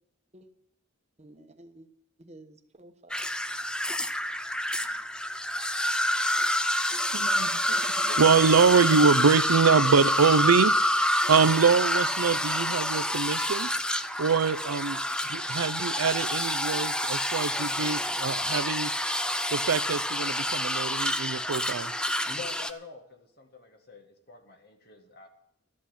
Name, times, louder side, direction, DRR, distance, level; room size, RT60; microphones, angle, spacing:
voice 1, 1.2-1.9 2.2-3.3 4.8-5.0, right 1 dB, 30° right, 1.1 m, -52 dB
sound 1, 3.1-22.7, left 1 dB, 5° left, 0.4 m, -28 dB
voice 2, 7.1-7.5 7.8-10.8 11.3-13.7 14.2-15.0 15.3-18.9 19.5-21.9, right 5 dB, 90° right, 0.6 m, -24 dB
voice 3, 22.2-25.3, left 4 dB, 45° left, 1.9 m, -46 dB
13.0 x 8.3 x 8.1 m
head